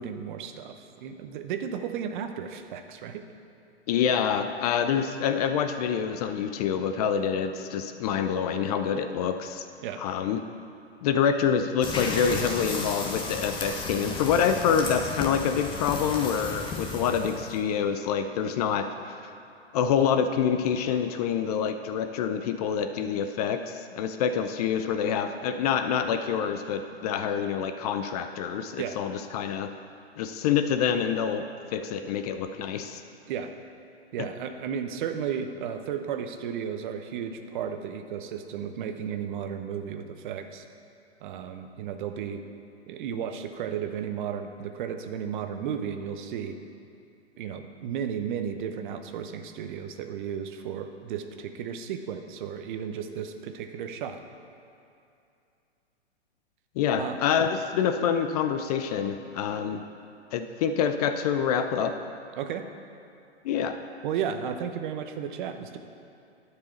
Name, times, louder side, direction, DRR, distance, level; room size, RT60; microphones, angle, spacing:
voice 1, 0.0-3.2 9.8-10.0 28.8-29.0 33.3-33.5 34.1-40.6 41.2-42.4 42.9-46.6 47.4-54.2 57.0-57.2 62.4-62.7 64.0-65.8, right 8 dB, 45° right, 7 dB, 0.8 m, -34 dB
voice 2, 3.9-9.6 10.0-10.4 11.0-19.2 19.7-29.7 30.2-31.4 31.7-33.0 34.2-34.3 56.8-59.8 60.3-62.0 63.4-63.8, left 7 dB, 35° left, 8 dB, 0.5 m, -26 dB
sound 1, 11.8-17.6, left 3 dB, 15° left, 0.9 m, -34 dB
10.5 x 4.8 x 6.9 m, 2.6 s
hypercardioid pair, 125°, 33 cm